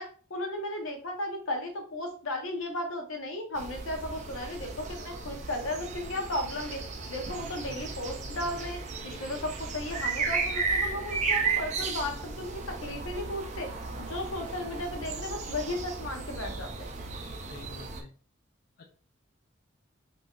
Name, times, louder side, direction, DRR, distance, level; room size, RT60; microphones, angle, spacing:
voice 1, 0.0-6.8 7.1-13.7 14.0-16.9, left 1 dB, 85° left, 3 dB, 0.8 m, -35 dB
sound 1, 3.6-18.0, right 4 dB, 35° right, 0.4 m, -34 dB
voice 2, 9.1-9.4 17.5-18.1 18.8-18.9, left 3 dB, 50° left, 0 dB, 0.4 m, -49 dB
3.9 x 2.6 x 2.3 m, 0.41 s
head